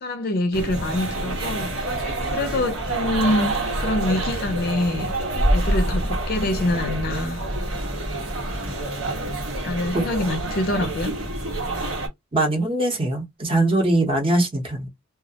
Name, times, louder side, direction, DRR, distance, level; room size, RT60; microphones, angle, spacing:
voice 1, 0.0-1.9 2.3-3.5 3.8-5.1 5.5-7.5 9.6-11.2, left 1 dB, 50° left, 0.4 m, -25 dB
sound 1, 0.5-12.1, right 1 dB, 85° right, 1.2 m, -27 dB
voice 2, 9.9-10.3 11.6-11.8 12.3-14.9, right 1 dB, 25° right, 0.8 m, -22 dB
2.3 x 2.0 x 2.7 m
head